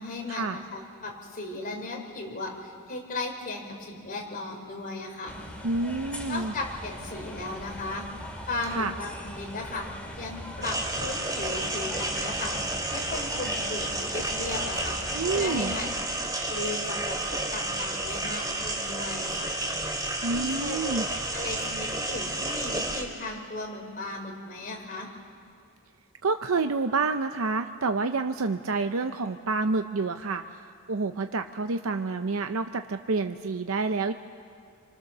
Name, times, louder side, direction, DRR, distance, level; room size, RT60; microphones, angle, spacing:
voice 1, 0.0-5.3 6.3-8.1 8.5-9.9 10.2-12.6 12.9-15.0 15.3-16.1 16.5-19.6 20.3-25.1, left 2 dB, 40° left, 0 dB, 4.0 m, -36 dB
sound 1, 5.3-15.9, equal, 5° left, 2.5 m, -41 dB
voice 2, 5.6-6.5 8.7-8.9 15.1-15.7 20.2-21.1 26.2-30.4 30.9-34.1, right 3 dB, 70° right, 7 dB, 0.7 m, -28 dB
sound 2, 10.6-23.0, right 2 dB, 20° right, 2.5 m, -31 dB
28.0 x 24.5 x 6.7 m, 2.3 s
head